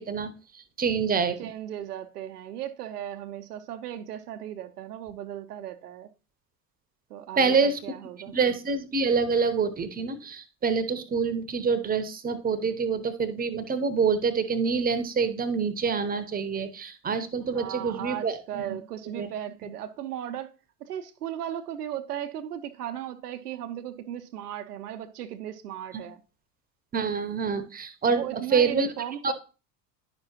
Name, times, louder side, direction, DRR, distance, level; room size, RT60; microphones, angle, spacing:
voice 1, 0.0-1.5 7.4-7.8 8.3-18.8 19.2-19.3 25.9-26.0 26.9-28.3 28.5-28.9 29.2-29.3, right 5 dB, 20° right, 0.9 m, -26 dB
voice 2, 1.4-6.1 7.1-8.3 17.5-20.5 20.8-26.2 28.1-29.3, right 11 dB, 70° right, 0.8 m, -36 dB
10.5 x 6.0 x 2.9 m
figure-of-eight pair, 75°, 48 cm